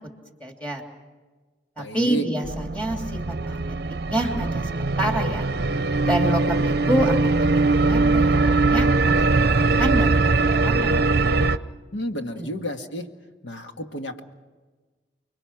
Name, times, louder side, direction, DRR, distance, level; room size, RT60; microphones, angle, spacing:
voice 1, 0.4-0.8 1.8-3.8 4.1-5.5 6.0-11.0 12.4-12.5, right 1 dB, 5° left, 1 dB, 3.0 m, -28 dB
voice 2, 1.8-2.3 11.9-13.1 13.4-14.2, right 1 dB, 90° left, 5 dB, 1.8 m, -31 dB
sound 1, 2.4-11.6, right 3 dB, 55° right, 0.6 m, -21 dB
30.0 x 22.5 x 5.9 m, 1.3 s
head